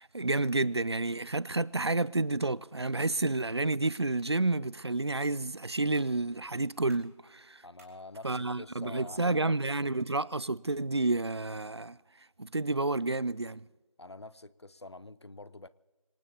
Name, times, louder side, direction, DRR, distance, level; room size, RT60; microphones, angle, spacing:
voice 1, 0.0-7.6 8.2-12.0 12.4-13.7, right 2 dB, 50° right, 0.5 m, -30 dB
sound 1, 5.9-11.4, right 1 dB, 30° right, 4.3 m, -68 dB
voice 2, 7.6-9.5 14.0-15.7, left 2 dB, 55° left, 0.6 m, -47 dB
26.0 x 18.5 x 2.8 m
figure-of-eight pair, 170°, 17 cm